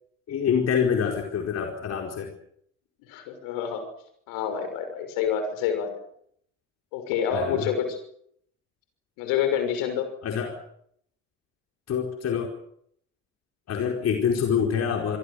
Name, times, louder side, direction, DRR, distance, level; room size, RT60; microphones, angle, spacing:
voice 1, 0.3-2.3 7.3-7.7 10.2-10.6 11.9-12.5 13.7-15.2, left 7 dB, 40° left, 2 dB, 4.8 m, -26 dB
voice 2, 3.1-3.8 4.3-5.9 6.9-7.8 9.2-10.1, left 8 dB, 60° left, 7 dB, 6.4 m, -27 dB
26.5 x 23.5 x 6.7 m, 0.69 s
figure-of-eight pair, 60°, 38 cm